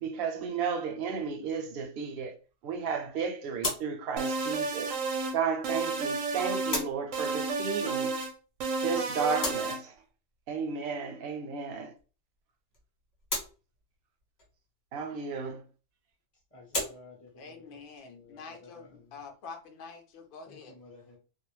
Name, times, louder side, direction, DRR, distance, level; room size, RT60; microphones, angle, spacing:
voice 1, 0.0-2.3 2.6-4.9 5.3-8.2 8.8-9.9 10.5-11.9 14.9-15.6, right 5 dB, 60° right, 0.7 m, -33 dB
sound 1, 1.1-20.4, left 2 dB, 40° left, 1.0 m, -42 dB
sound 2, 4.2-5.4 5.6-6.8 7.1-8.3 8.6-9.8, right 4 dB, 85° right, 1.0 m, -31 dB
voice 2, 16.5-19.1 20.4-21.2, left 3 dB, 15° left, 0.7 m, -54 dB
voice 3, 17.4-20.7, left 5 dB, 55° left, 0.7 m, -46 dB
2.4 x 2.1 x 3.1 m
omnidirectional pair, 1.3 m